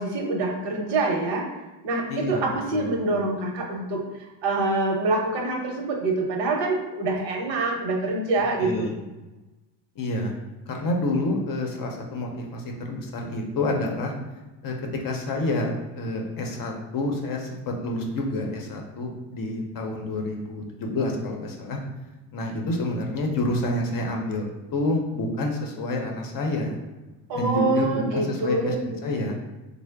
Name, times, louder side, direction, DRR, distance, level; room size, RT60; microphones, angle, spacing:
voice 1, 0.0-1.5 1.8-8.9 27.3-28.8, right 2 dB, 70° right, 1 dB, 0.8 m, -25 dB
voice 2, 2.1-3.0 8.6-8.9 10.0-10.3 10.7-14.1 14.6-14.7 15.0-21.8 22.3-26.8 27.3-29.4, left 2 dB, 50° left, 1 dB, 0.6 m, -28 dB
3.7 x 2.0 x 3.3 m, 1.1 s
cardioid pair, 150°, 45 cm